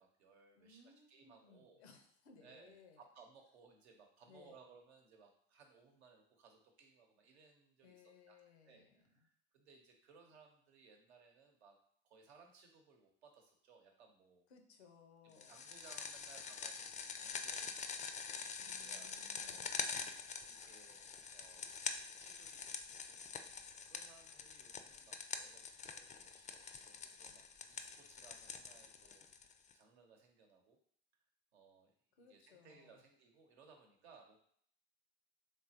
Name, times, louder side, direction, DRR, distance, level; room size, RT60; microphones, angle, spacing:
voice 1, 0.0-1.8 2.4-8.4 8.6-11.8 12.0-14.4 15.2-19.7 20.4-21.7 22.0-29.5 29.7-30.8 31.5-34.4, right 5 dB, 80° right, 2 dB, 0.9 m, -64 dB
voice 2, 0.6-3.0 4.2-4.6 7.8-9.3 14.5-15.6 18.6-20.0 32.2-33.0, left 5 dB, 85° left, 5 dB, 0.7 m, -64 dB
sound 1, 15.4-29.7, left 6 dB, 25° left, 0.3 m, -46 dB
3.7 x 3.1 x 2.8 m, 0.63 s
hypercardioid pair, 70°, 32 cm